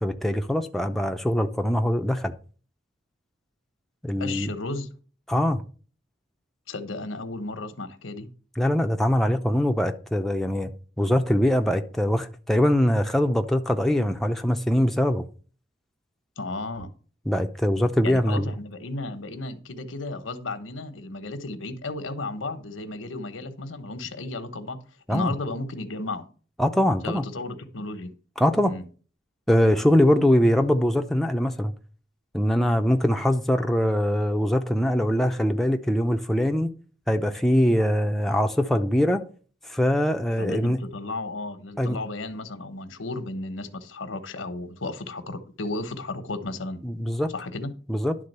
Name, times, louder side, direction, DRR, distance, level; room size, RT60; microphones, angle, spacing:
voice 1, 0.0-2.3 4.0-4.5 5.3-5.6 8.6-10.7 11.0-15.2 17.3-18.5 25.1-25.3 26.6-27.3 28.4-28.7 29.5-31.7 32.3-36.7 37.1-39.2 39.6-40.8 41.8-42.0 46.8-47.3 47.9-48.2, equal, ahead, 0.6 m, -22 dB
voice 2, 4.2-4.9 6.7-8.3 16.4-16.9 18.0-24.8 25.1-26.2 27.0-28.1 28.6-28.8 40.4-46.8 47.3-47.7, left 2 dB, 90° left, 1.2 m, -34 dB
11.5 x 3.8 x 6.7 m
head